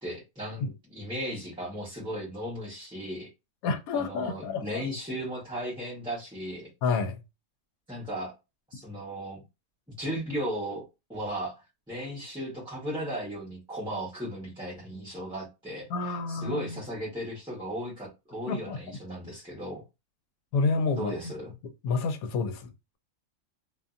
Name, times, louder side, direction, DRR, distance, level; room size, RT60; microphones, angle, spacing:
voice 1, 0.0-3.3 3.9-6.7 7.9-8.3 8.7-9.4 9.9-11.5 11.9-15.9 16.3-19.8 21.0-21.5, equal, 5° right, 0.9 m, -36 dB
voice 2, 3.6-4.9 6.8-7.2 15.9-16.8 18.5-19.0 20.5-21.3 21.8-22.7, left 4 dB, 85° left, 1.0 m, -29 dB
2.6 x 2.6 x 2.4 m
omnidirectional pair, 1.5 m